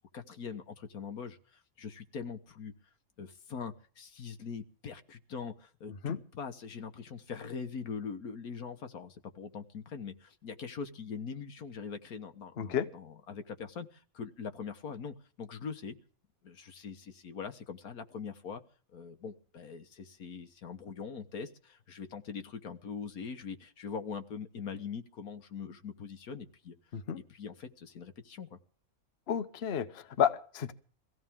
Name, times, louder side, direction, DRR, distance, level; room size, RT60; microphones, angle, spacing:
voice 1, 0.1-2.7 3.2-16.0 16.4-18.6 18.9-26.8 27.3-28.6, left 6 dB, 85° left, 8 dB, 1.8 m, -42 dB
voice 2, 29.3-30.7, left 8 dB, 50° left, 11 dB, 1.1 m, -31 dB
23.5 x 16.0 x 3.7 m, 0.41 s
omnidirectional pair, 1.5 m